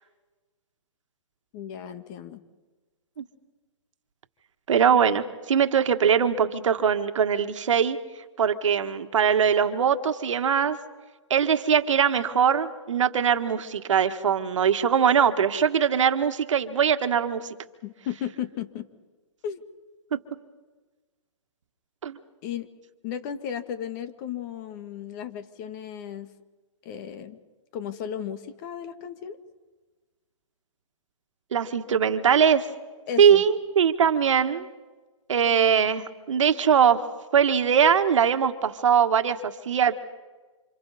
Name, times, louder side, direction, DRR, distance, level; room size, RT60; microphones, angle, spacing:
voice 1, 1.5-2.4 17.8-18.9 19.4-19.6 22.4-22.7 23.0-26.3 26.8-27.4 27.7-29.4 33.1-33.4, left 9 dB, 35° left, 11 dB, 1.6 m, -35 dB
voice 2, 4.7-8.0 8.4-10.8 11.3-17.5 22.0-22.2 31.5-32.7 33.2-34.7 35.3-37.0 37.3-40.0, right 7 dB, 70° right, 8 dB, 1.7 m, -21 dB
28.5 x 27.0 x 4.2 m, 1.3 s
hypercardioid pair, 140°, 17 cm